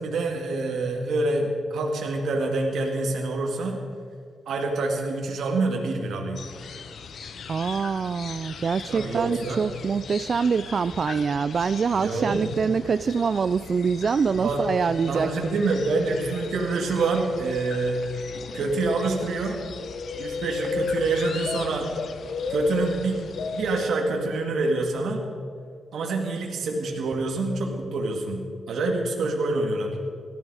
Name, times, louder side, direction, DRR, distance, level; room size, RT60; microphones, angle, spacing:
voice 1, 0.0-3.8 4.5-6.4 8.9-9.7 11.9-12.5 14.3-14.7 15.1-18.0 18.5-19.6 20.2-21.9 22.5-23.2 23.5-25.2 25.9-30.0, right 3 dB, 75° right, 1 dB, 2.1 m, -26 dB
sound 1, 6.4-23.9, left 5 dB, 65° left, 1.1 m, -36 dB
voice 2, 7.5-15.6, right 5 dB, 50° right, 13 dB, 0.3 m, -25 dB
18.5 x 13.5 x 4.9 m, 2.3 s
cardioid pair, 95°, 0 cm